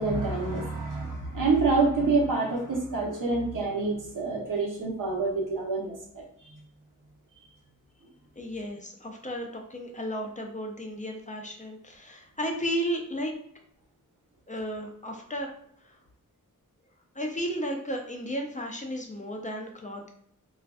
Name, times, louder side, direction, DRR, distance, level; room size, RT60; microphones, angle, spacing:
voice 1, 0.0-6.5, right 3 dB, 70° right, -2 dB, 0.8 m, -27 dB
voice 2, 8.4-13.3 14.5-15.5 15.8-16.0 17.2-20.1, equal, 25° left, 2 dB, 0.4 m, -34 dB
2.4 x 2.4 x 2.2 m, 0.69 s
wide cardioid pair, 105°, 33 cm